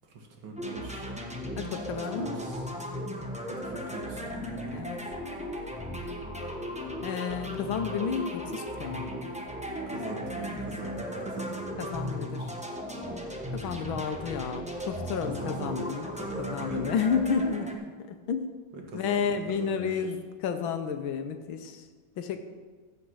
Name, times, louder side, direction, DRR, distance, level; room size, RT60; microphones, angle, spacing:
voice 1, 0.1-1.1 2.2-2.6 3.5-4.8 9.9-11.9 15.3-15.9 16.1-16.9 18.7-19.9, right 3 dB, 75° right, 1 dB, 2.4 m, -41 dB
sound 1, 0.6-17.7, equal, 5° right, 0.6 m, -36 dB
voice 2, 1.6-2.4 4.7-5.1 5.4-5.5 7.0-9.1 11.8-12.5 13.5-18.5 18.9-21.9 22.2-22.4, left 6 dB, 85° left, 8 dB, 1.7 m, -31 dB
15.5 x 5.4 x 6.2 m, 1.5 s
omnidirectional pair, 2.2 m